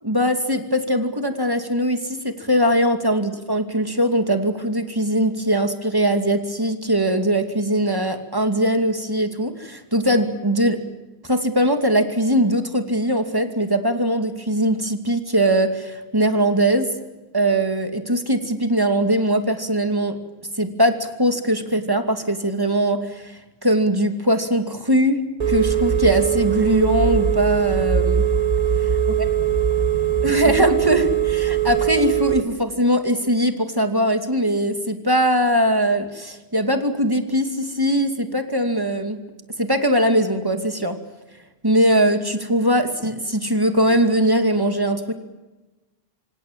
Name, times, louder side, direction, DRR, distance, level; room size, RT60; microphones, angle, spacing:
voice 1, 0.0-10.8 11.3-16.9 17.3-20.1 20.6-25.2 25.5-28.2 30.2-39.2 39.6-41.0 41.6-45.1, equal, 20° right, 6 dB, 2.6 m, -21 dB
Telephone, 25.4-32.4, right 9 dB, 40° right, 2.1 m, -21 dB
26.5 x 26.5 x 7.5 m, 1.1 s
omnidirectional pair, 1.1 m